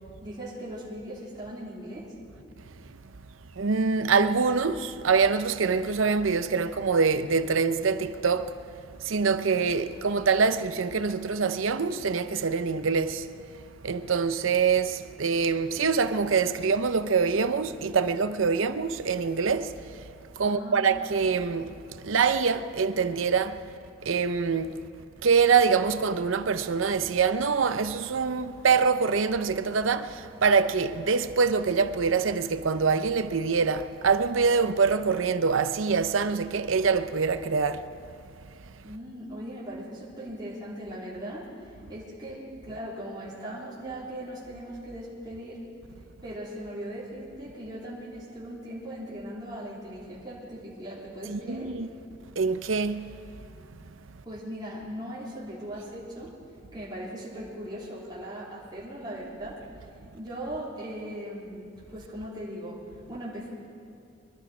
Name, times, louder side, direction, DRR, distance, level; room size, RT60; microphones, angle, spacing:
voice 1, 0.2-2.1 20.4-20.9 38.8-45.6 46.2-51.7 54.2-56.3 56.7-59.6 60.1-62.8 63.1-63.5, equal, 20° right, 3.4 m, -39 dB
voice 2, 2.7-3.0 3.6-8.6 8.9-20.1 20.4-23.6 24.0-24.9 25.2-37.9 51.3-51.9 52.4-53.1, right 5 dB, 75° right, 0.6 m, -25 dB
24.0 x 12.0 x 4.9 m
head